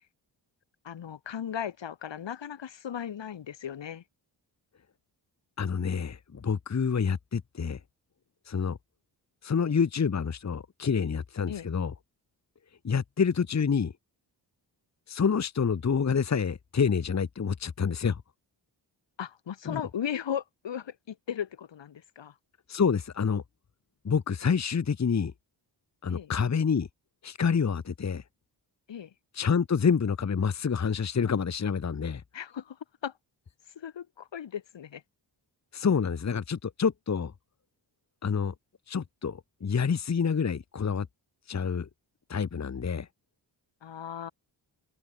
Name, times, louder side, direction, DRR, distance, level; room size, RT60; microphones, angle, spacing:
voice 1, 0.8-4.0 11.5-11.7 19.2-22.3 26.1-26.3 28.9-29.1 32.3-32.8 33.0-33.1 33.8-35.0 43.8-44.3, left 9 dB, 75° left, 2.6 m, -36 dB
voice 2, 5.6-7.8 8.5-8.8 9.4-11.9 12.8-13.9 15.1-18.2 19.6-19.8 22.7-23.4 24.0-25.3 26.0-26.9 27.2-28.2 29.3-32.2 35.7-37.3 38.2-38.5 38.9-41.1 41.5-41.9 42.3-43.1, left 6 dB, 40° left, 1.2 m, -27 dB
cardioid pair, 60°, 44 cm